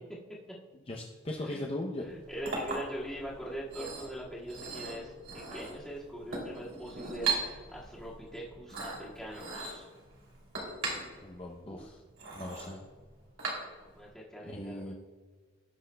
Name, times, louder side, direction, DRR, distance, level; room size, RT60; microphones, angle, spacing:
voice 1, 0.9-2.0 11.2-12.0 12.3-12.8 14.4-14.9, left 1 dB, 30° left, 0 dB, 0.6 m, -38 dB
voice 2, 2.0-9.9 11.6-11.9 13.8-14.9, right 1 dB, 5° left, -7 dB, 1.8 m, -42 dB
Chink clink, 2.0-14.0, right 4 dB, 80° right, 2.7 m, -39 dB
18.0 x 6.1 x 2.2 m, 1.5 s
head